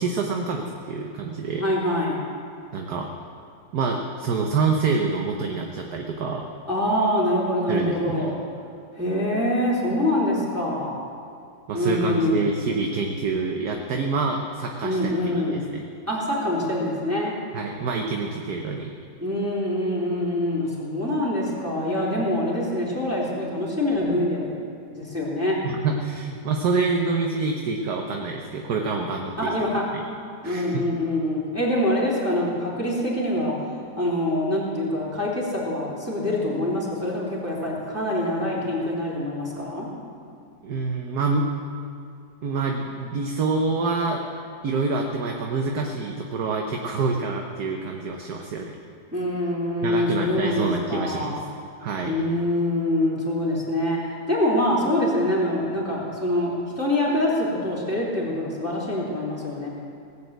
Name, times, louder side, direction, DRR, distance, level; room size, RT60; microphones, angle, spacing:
voice 1, 0.0-1.6 2.7-3.1 3.7-6.5 7.7-8.3 11.7-15.1 15.5-15.8 17.5-18.9 25.6-29.5 30.4-30.8 40.6-41.5 42.4-44.2 44.6-48.7 49.8-51.4 51.8-52.2, right 4 dB, 60° right, 2 dB, 1.4 m, -26 dB
voice 2, 1.6-2.3 6.7-8.4 8.9-11.0 11.7-12.5 14.8-15.7 16.1-17.3 19.2-24.5 24.9-25.5 29.4-29.8 30.4-33.5 34.0-39.9 49.1-51.4 52.0-54.0 54.3-59.7, left 1 dB, 5° right, -6 dB, 2.9 m, -25 dB
18.0 x 7.2 x 8.0 m, 2.4 s
omnidirectional pair, 2.0 m